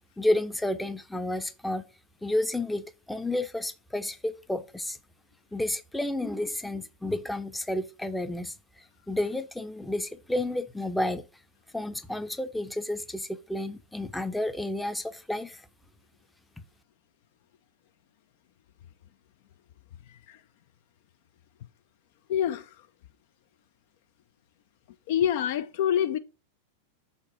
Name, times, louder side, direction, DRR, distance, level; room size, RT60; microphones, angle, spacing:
voice 1, 0.2-1.8 2.2-5.0 5.5-8.5 9.1-11.2 11.7-15.7, left 1 dB, 5° left, 0.6 m, -31 dB
voice 2, 22.3-22.7 25.1-26.2, left 9 dB, 50° left, 0.4 m, -26 dB
6.6 x 4.4 x 4.3 m
figure-of-eight pair, 90°, 0 cm